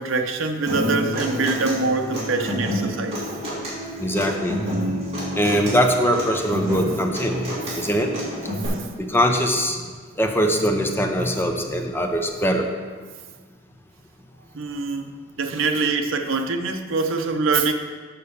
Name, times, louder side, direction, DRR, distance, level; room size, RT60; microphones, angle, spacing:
voice 1, 0.0-3.2 14.5-17.7, right 4 dB, 70° right, 5 dB, 0.7 m, -24 dB
Human voice / Acoustic guitar, 0.7-8.7, equal, 30° right, 2.8 m, -29 dB
voice 2, 4.0-4.6 5.4-8.1 9.0-9.9 10.2-12.7, equal, 10° left, 3 dB, 0.6 m, -22 dB
6.8 x 5.4 x 6.9 m, 1.5 s
head